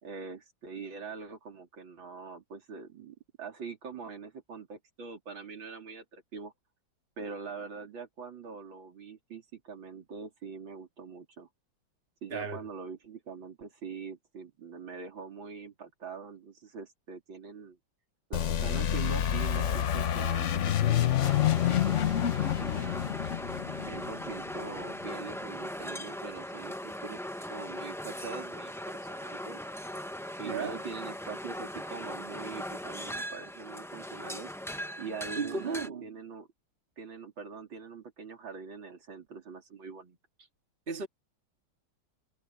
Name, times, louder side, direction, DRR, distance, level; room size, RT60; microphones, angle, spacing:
voice 1, 0.0-6.5 7.2-11.5 12.2-17.8 18.3-22.5 22.8-23.1 23.8-29.6 30.4-34.5 35.0-36.5 37.0-40.2, right 5 dB, 80° right, 4.0 m, -43 dB
voice 2, 12.3-12.6 30.4-30.8 35.4-36.2 40.9-41.1, right 5 dB, 30° right, 2.1 m, -35 dB
sound 1, 18.3-24.9, left 10 dB, 55° left, 0.8 m, -28 dB
sound 2, 21.2-35.9, equal, 5° left, 0.5 m, -39 dB
omnidirectional pair, 2.1 m